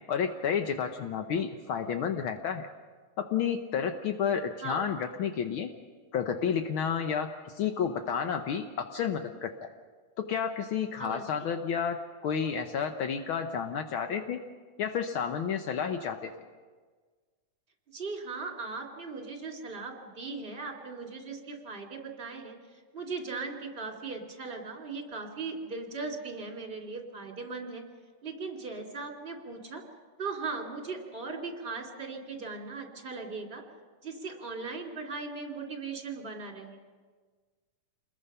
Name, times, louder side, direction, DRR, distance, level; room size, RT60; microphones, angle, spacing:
voice 1, 0.1-2.7 3.2-5.7 6.1-9.7 10.3-14.4 14.8-16.3, left 7 dB, 75° left, 6 dB, 1.1 m, -31 dB
voice 2, 17.9-27.8 28.2-29.8 30.2-33.6 34.0-36.8, right 4 dB, 20° right, 1 dB, 2.9 m, -38 dB
27.5 x 21.5 x 5.6 m, 1.5 s
omnidirectional pair, 3.5 m